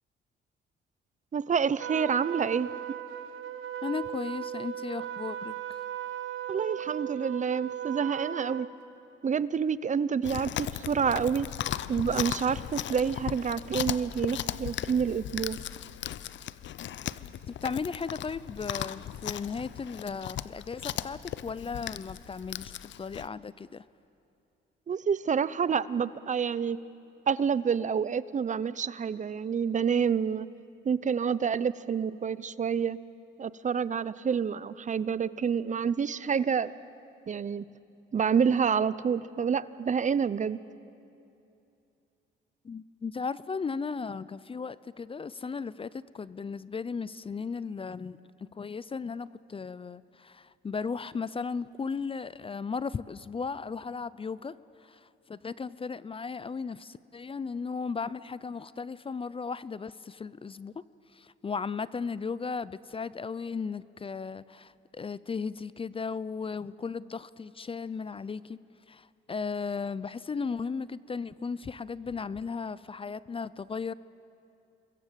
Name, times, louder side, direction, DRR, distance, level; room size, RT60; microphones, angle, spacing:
voice 1, 1.3-2.7 6.5-8.7 9.2-11.5 11.9-15.6 24.9-26.8 27.3-30.5 30.8-33.0 33.4-36.7 37.3-37.6 38.1-40.6, right 6 dB, 40° right, 17 dB, 0.7 m, -28 dB
Trumpet, 1.8-8.7, right 10 dB, 90° right, 1.2 m, -37 dB
voice 2, 3.8-5.8 17.6-23.8 42.6-60.7 61.1-68.6 68.9-73.9, left 5 dB, 25° left, 18 dB, 0.5 m, -36 dB
Chewing mastication, 10.2-23.3, left 11 dB, 65° left, 0.7 m, -37 dB
28.5 x 22.0 x 7.6 m, 2.7 s
cardioid pair, 90°, 20 cm